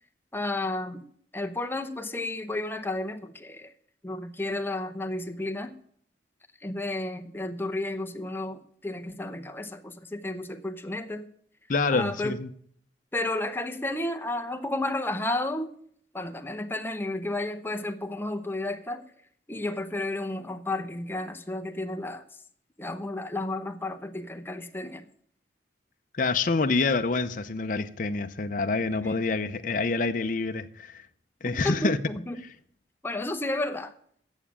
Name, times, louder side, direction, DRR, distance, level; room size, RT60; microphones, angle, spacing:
voice 1, 0.3-1.0 1.3-3.7 4.0-5.7 6.6-11.3 11.9-12.4 13.1-15.7 16.1-19.0 19.5-22.2 22.8-25.0 29.0-29.1 31.6-32.4 33.0-33.9, left 2 dB, 10° left, 0.8 m, -32 dB
voice 2, 11.7-12.5 26.2-31.0 31.4-32.0, left 3 dB, 50° left, 0.7 m, -27 dB
9.1 x 7.3 x 8.6 m
head